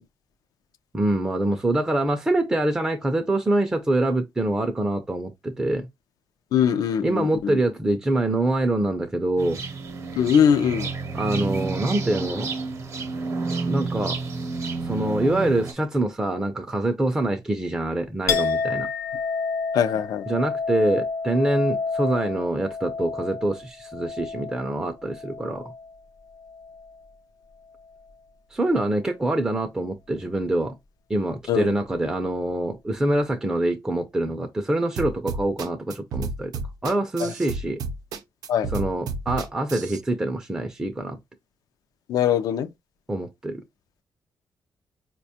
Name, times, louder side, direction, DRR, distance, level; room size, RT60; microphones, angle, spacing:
voice 1, 0.9-5.9 7.0-9.6 11.1-12.5 13.7-14.2 14.8-18.9 20.3-25.7 28.5-30.8 31.1-36.5 36.8-37.8 38.7-41.2 43.1-43.6, right 1 dB, 10° right, 0.4 m, -25 dB
voice 2, 6.5-7.6 10.2-10.9 19.7-20.3 31.5-31.7 37.2-37.3 38.5-38.7 42.1-42.7, left 8 dB, 80° left, 0.4 m, -21 dB
sound 1, 9.4-15.7, right 4 dB, 50° right, 0.7 m, -30 dB
Chink clink, 18.3-26.0 26.3-27.0, left 5 dB, 60° left, 0.8 m, -30 dB
sound 2, 35.0-40.0, right 4 dB, 85° right, 0.6 m, -31 dB
4.8 x 2.2 x 2.7 m
wide cardioid pair, 165°, 6 cm